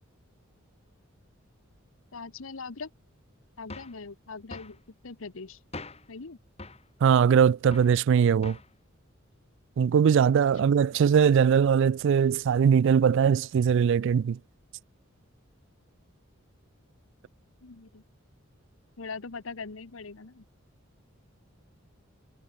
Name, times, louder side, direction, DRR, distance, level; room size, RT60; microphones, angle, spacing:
voice 1, 2.1-2.9 3.6-5.6 6.1-6.4 17.6-18.0 19.0-20.4, left 4 dB, 75° left, 1.0 m, -41 dB
sound 1, 3.7-4.0 4.5-4.8 5.7-6.1 6.6-6.9 7.7-8.0 8.4-8.7, left 2 dB, 30° left, 3.9 m, -42 dB
voice 2, 7.0-8.6 9.8-14.4, right 7 dB, 60° right, 0.3 m, -21 dB
head